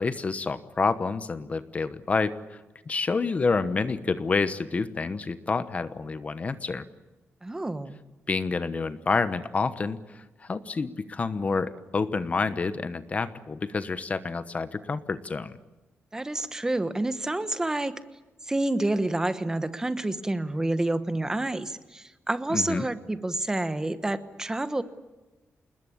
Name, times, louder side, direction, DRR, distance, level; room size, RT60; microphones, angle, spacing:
voice 1, 0.0-2.6 2.9-6.8 8.3-15.6 22.5-22.9, left 4 dB, 30° left, 12 dB, 1.1 m, -28 dB
voice 2, 7.4-8.0 16.1-18.0 18.4-24.8, right 2 dB, 15° right, 11 dB, 1.1 m, -28 dB
27.5 x 21.0 x 8.6 m, 1.1 s
wide cardioid pair, 160°, 5 cm